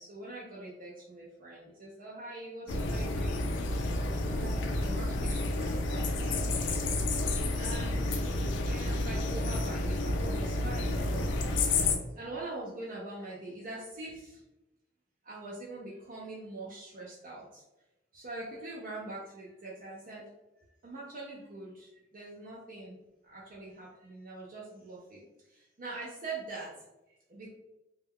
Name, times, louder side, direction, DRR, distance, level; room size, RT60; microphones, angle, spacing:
voice 1, 0.0-3.4 4.2-6.4 7.5-14.4 15.2-17.6 18.1-20.3 20.6-27.5, right 2 dB, 45° right, -5 dB, 0.4 m, -44 dB
sound 1, 2.7-12.0, left 2 dB, 70° left, 0.4 m, -30 dB
2.2 x 2.1 x 3.4 m, 0.97 s
head